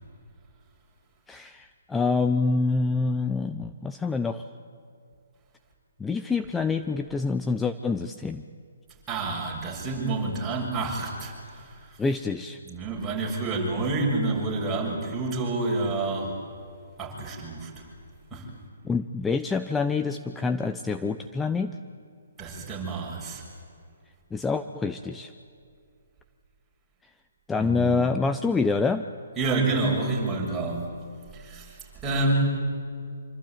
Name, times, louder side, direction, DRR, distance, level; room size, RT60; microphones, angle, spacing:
voice 1, 1.3-4.4 6.0-8.4 12.0-12.6 18.8-21.7 24.3-25.3 27.5-29.0, left 4 dB, 10° left, 8 dB, 0.7 m, -26 dB
voice 2, 9.1-12.0 12.7-16.4 17.0-17.8 18.3-18.5 22.4-23.4 27.6-28.1 29.4-30.9 31.3-32.4, right 2 dB, 10° right, -3 dB, 7.2 m, -28 dB
26.0 x 25.0 x 9.1 m, 2.3 s
figure-of-eight pair, 140°, 0 cm